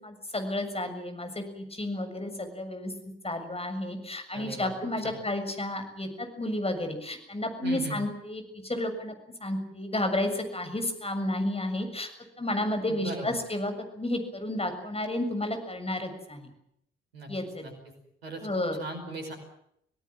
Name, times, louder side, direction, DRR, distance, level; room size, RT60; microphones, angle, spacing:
voice 1, 0.0-2.9 3.2-9.1 9.4-12.1 12.4-16.4 17.3-17.7 18.4-18.8, left 1 dB, 20° left, 7 dB, 7.0 m, -31 dB
voice 2, 4.3-5.2 7.6-8.0 12.9-13.3 17.1-17.3 17.6-17.7 18.2-18.5 18.8-19.3, right 1 dB, 85° right, 4 dB, 5.3 m, -38 dB
27.0 x 18.0 x 7.6 m, 0.75 s
figure-of-eight pair, 45°, 29 cm